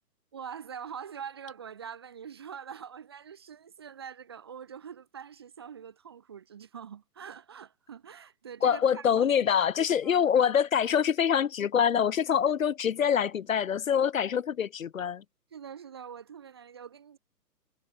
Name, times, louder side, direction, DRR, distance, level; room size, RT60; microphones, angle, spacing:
voice 1, 0.3-9.3 10.0-10.3 15.5-17.2, right 7 dB, 15° right, 0.7 m, -44 dB
voice 2, 8.6-15.2, left 8 dB, 55° left, 0.5 m, -25 dB
figure-of-eight pair, 135°, 49 cm